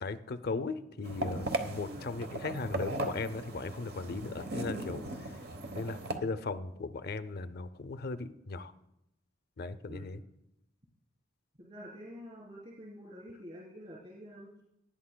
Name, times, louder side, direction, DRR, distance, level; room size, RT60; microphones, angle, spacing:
voice 1, 0.0-5.1 5.7-8.7 9.6-10.2, left 3 dB, 55° left, 12 dB, 0.5 m, -37 dB
sound 1, 1.0-6.2, right 2 dB, 55° right, 1.0 m, -37 dB
voice 2, 11.6-14.5, equal, 35° right, -6 dB, 3.3 m, -47 dB
19.0 x 10.5 x 2.2 m, 0.84 s
head